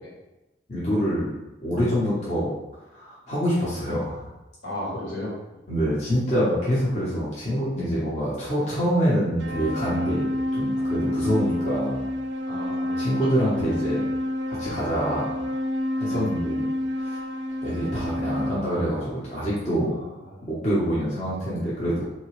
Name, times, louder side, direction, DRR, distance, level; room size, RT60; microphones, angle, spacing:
voice 1, 0.7-1.3 1.6-2.5 2.9-4.3 5.7-12.0 13.0-14.1 14.5-15.3 16.0-16.7 17.0-17.2 17.6-19.9 20.5-22.0, equal, 35° left, -8 dB, 0.8 m, -26 dB
voice 2, 4.6-5.6 12.5-13.0 16.1-16.2 19.8-20.4, left 1 dB, 70° left, -5 dB, 1.4 m, -35 dB
sound 1, 9.4-18.5, left 1 dB, 70° right, 0.4 m, -28 dB
3.9 x 2.8 x 3.0 m, 1.0 s
head